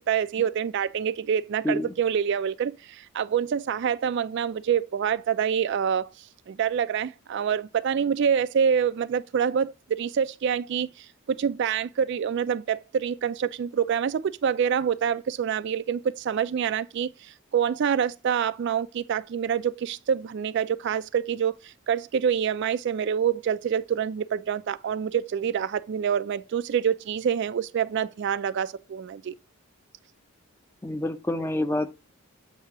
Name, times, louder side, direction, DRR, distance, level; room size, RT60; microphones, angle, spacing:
voice 1, 0.0-29.3, right 8 dB, 50° right, 0.3 m, -26 dB
voice 2, 30.8-32.0, left 1 dB, 10° left, 0.5 m, -27 dB
8.0 x 2.8 x 5.8 m
head